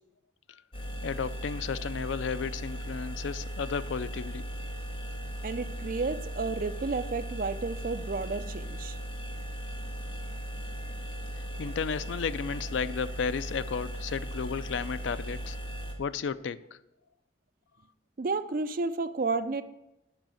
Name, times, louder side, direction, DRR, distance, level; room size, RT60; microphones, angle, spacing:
sound 1, 0.7-15.9, equal, 30° left, 1.2 m, -37 dB
voice 1, 1.0-4.4 11.6-15.6 16.0-16.8, left 6 dB, 80° left, 0.4 m, -33 dB
voice 2, 5.4-9.0 18.2-19.6, right 3 dB, 45° right, 0.5 m, -31 dB
7.6 x 5.7 x 7.6 m
head